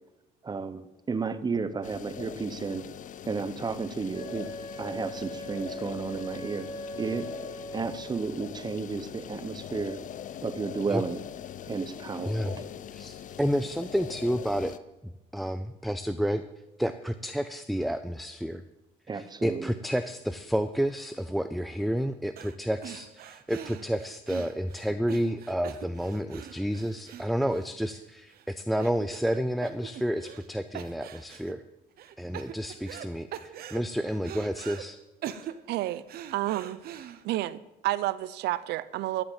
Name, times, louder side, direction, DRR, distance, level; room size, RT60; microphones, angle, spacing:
voice 1, 0.4-0.8 1.1-2.9 3.3-4.5 4.8-7.3 7.7-10.0 10.4-11.2 11.7-12.7 19.1-19.7, right 4 dB, 25° right, 12 dB, 0.9 m, -32 dB
sound 1, 1.8-14.8, left 10 dB, 50° left, 0.6 m, -42 dB
Wind instrument woodwind instrument, 4.1-8.3, equal, 30° left, 1.6 m, -40 dB
voice 2, 12.9-14.8 15.0-16.4 16.8-18.6 19.1-31.6 32.2-35.0, equal, ahead, 10 dB, 0.5 m, -30 dB
sound 2, 22.4-22.6 22.8-28.0 28.3-28.4 28.8-29.4 29.6-30.5 30.7-31.5 32.0-33.1 33.3-34.8 35.2-37.4, right 10 dB, 65° right, 1.0 m, -42 dB
voice 3, 35.7-36.0 36.3-36.8 37.2-39.2, right 16 dB, 80° right, 17 dB, 0.6 m, -30 dB
13.5 x 7.8 x 7.4 m, 1.0 s
cardioid pair, 110°, 17 cm